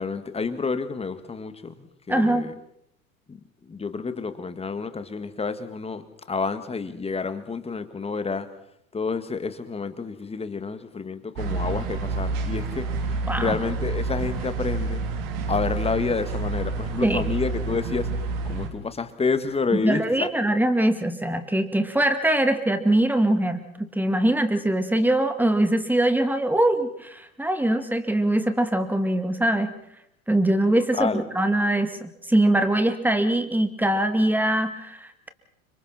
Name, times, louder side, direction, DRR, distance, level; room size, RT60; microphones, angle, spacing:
voice 1, 0.0-1.7 2.1-2.5 3.3-8.5 8.9-12.9 13.4-15.0 15.5-18.1 18.4-20.3 30.9-31.2, left 4 dB, 15° left, 10 dB, 1.9 m, -29 dB
voice 2, 2.1-2.5 13.3-13.6 17.0-17.3 19.7-29.7 30.3-35.3, right 1 dB, 5° right, 9 dB, 2.3 m, -22 dB
sound 1, 11.4-18.7, right 3 dB, 50° right, 3.6 m, -29 dB
30.0 x 26.0 x 4.3 m, 0.77 s
figure-of-eight pair, 85°, 42 cm